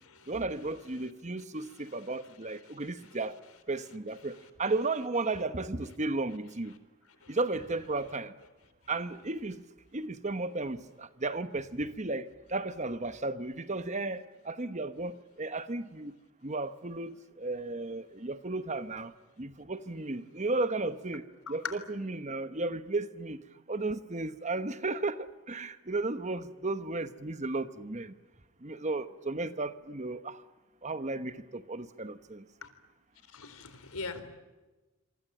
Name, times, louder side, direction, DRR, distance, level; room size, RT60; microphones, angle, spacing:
voice 1, 0.3-3.4 3.7-6.8 7.3-8.3 8.9-9.6 9.9-16.2 16.4-19.1 19.4-23.4 23.7-28.1 28.6-30.4 30.8-32.4, right 2 dB, 35° right, 1.1 m, -34 dB
voice 2, 33.3-34.2, left 4 dB, 90° left, 3.9 m, -40 dB
27.5 x 23.5 x 8.9 m
head